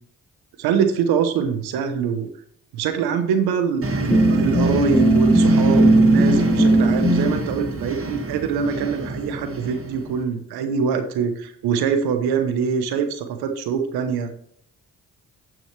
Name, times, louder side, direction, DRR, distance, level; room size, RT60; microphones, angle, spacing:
voice 1, 0.6-2.3 2.7-14.3, right 6 dB, 85° right, 7 dB, 1.0 m, -24 dB
sound 1, 3.8-10.2, right 2 dB, 35° right, 1.8 m, -27 dB
sound 2, 4.1-7.4, right 1 dB, 10° left, 2.0 m, -17 dB
10.5 x 6.1 x 3.2 m, 0.69 s
supercardioid pair, 45°, 37 cm